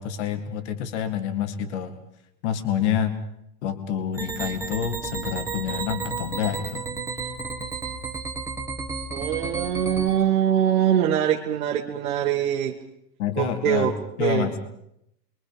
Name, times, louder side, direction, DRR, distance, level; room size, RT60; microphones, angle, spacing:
voice 1, 0.0-2.0 2.4-3.2 3.6-6.9 13.2-13.9 14.2-14.6, left 9 dB, 45° left, 8 dB, 2.2 m, -27 dB
sound 1, 4.1-10.1, right 4 dB, 5° right, 1.8 m, -32 dB
voice 2, 9.1-12.8 13.4-14.5, right 10 dB, 55° right, -1 dB, 2.2 m, -23 dB
28.0 x 24.0 x 5.1 m, 0.77 s
supercardioid pair, 165°, 50 cm